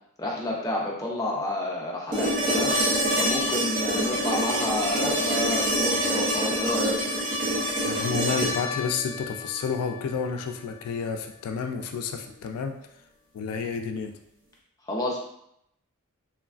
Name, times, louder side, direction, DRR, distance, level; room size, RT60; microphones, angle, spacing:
voice 1, 0.2-2.7 3.2-7.0 14.9-15.2, left 1 dB, 15° left, -3 dB, 0.5 m, -29 dB
sound 1, 2.1-10.2 12.3-12.4, equal, 40° right, 0.7 m, -26 dB
voice 2, 7.9-12.7 13.3-14.2, left 5 dB, 90° left, 7 dB, 0.3 m, -30 dB
3.1 x 2.3 x 2.4 m, 0.76 s
head